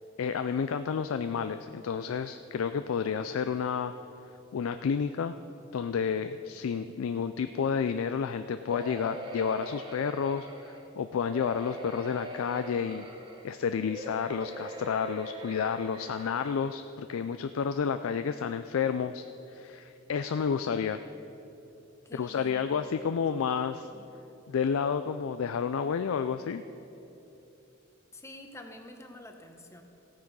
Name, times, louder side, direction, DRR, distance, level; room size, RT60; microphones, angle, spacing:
voice 1, 0.2-3.9 4.5-5.4 5.7-13.1 13.4-21.0 22.1-23.9 24.5-26.6, left 6 dB, 85° left, 10 dB, 0.4 m, -30 dB
sound 1, 8.7-10.8 11.3-13.5 13.9-16.7 17.3-17.4 17.7-17.8, right 1 dB, 25° right, 1.1 m, -42 dB
voice 2, 22.0-23.5 23.9-24.2 28.1-29.8, left 1 dB, 15° left, 4 dB, 0.9 m, -49 dB
15.5 x 8.7 x 4.7 m, 2.9 s
head